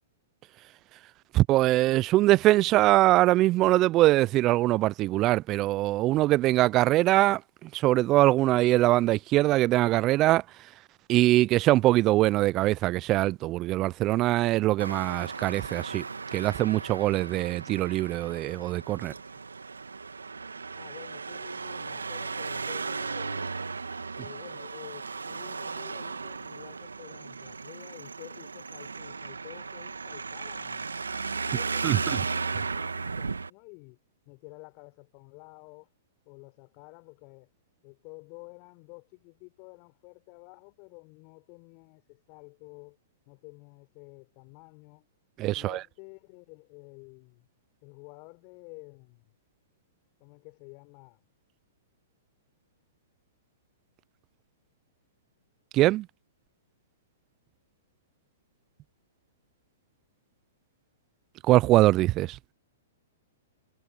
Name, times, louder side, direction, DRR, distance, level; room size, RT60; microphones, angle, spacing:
voice 1, 1.3-7.4 7.7-10.4 11.1-16.0 16.3-19.1 31.8-32.0 45.4-45.8 55.7-56.1 61.5-62.4, right 16 dB, 35° right, 0.5 m, -22 dB
Traffic noise roadway noise, 14.8-33.5, right 4 dB, 90° right, 2.2 m, -36 dB
voice 2, 20.7-23.6 24.2-30.9 31.4-35.9 36.3-37.5 37.8-43.0 43.3-45.1 45.5-47.5 47.8-49.3 50.2-51.3, left 37 dB, 40° left, 5.5 m, -50 dB
hypercardioid pair, 115°, 0 cm